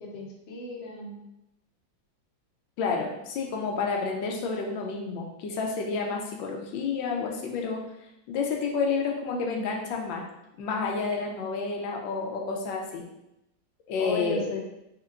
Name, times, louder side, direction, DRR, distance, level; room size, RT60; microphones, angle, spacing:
voice 1, 0.0-1.2 9.3-9.6 14.0-14.6, left 2 dB, 60° left, -2 dB, 0.6 m, -35 dB
voice 2, 2.8-7.8 8.3-10.2 10.6-13.0 13.9-14.4, left 4 dB, 90° left, 1 dB, 1.4 m, -30 dB
4.4 x 2.8 x 2.5 m, 0.87 s
omnidirectional pair, 2.0 m